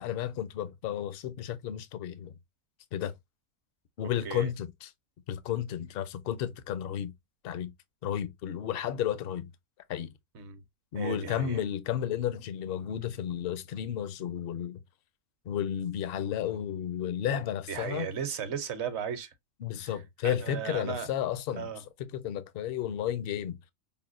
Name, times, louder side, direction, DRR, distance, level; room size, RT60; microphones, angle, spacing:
voice 1, 0.0-2.3 2.9-3.1 4.0-4.9 5.3-7.1 7.4-7.7 8.0-9.5 9.9-10.1 10.9-14.8 15.5-18.1 19.6-21.7 22.0-23.6, left 10 dB, 60° left, 0.6 m, -32 dB
voice 2, 10.9-11.6 17.7-19.3 19.8-20.0 20.2-21.1 21.6-21.8, right 7 dB, 60° right, 0.9 m, -36 dB
5.5 x 2.1 x 2.4 m
omnidirectional pair, 1.5 m